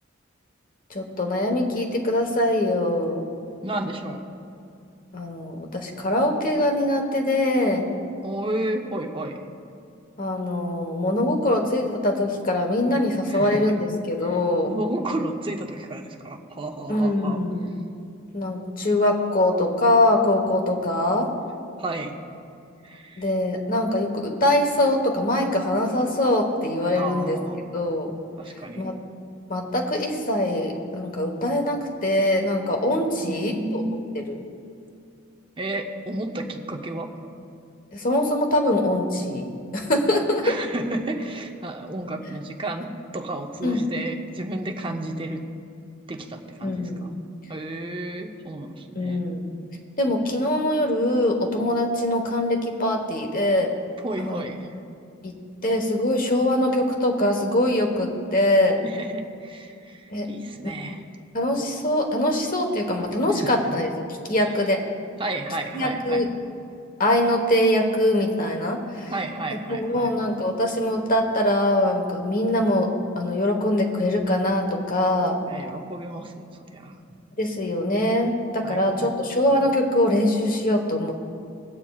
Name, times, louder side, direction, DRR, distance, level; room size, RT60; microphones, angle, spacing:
voice 1, 0.9-3.3 5.1-7.9 10.2-14.8 16.9-17.7 18.3-21.3 23.2-27.4 27.7-28.1 28.8-29.0 29.5-33.8 34.1-34.4 37.9-39.5 39.7-40.5 43.6-43.8 46.6-47.1 48.9-49.5 50.0-53.7 54.2-54.5 55.2-55.4 55.6-58.8 60.1-60.3 60.6-60.7 61.3-63.9 64.2-64.8 65.7-66.3 67.0-69.1 69.7-75.4 77.4-81.2, left 1 dB, 40° left, 3 dB, 1.2 m, -23 dB
voice 2, 3.6-4.3 8.2-9.4 13.3-13.7 14.6-17.4 21.8-22.1 22.8-23.3 26.9-27.7 28.4-28.9 33.2-34.1 35.6-37.1 40.4-45.4 46.1-47.1 47.5-49.2 54.0-54.7 58.8-61.0 63.3-63.6 64.4-64.5 65.2-66.3 69.1-70.2 75.5-77.0 78.6-79.2, right 2 dB, 25° right, 3 dB, 0.7 m, -32 dB
22.0 x 8.6 x 2.4 m, 2.4 s
head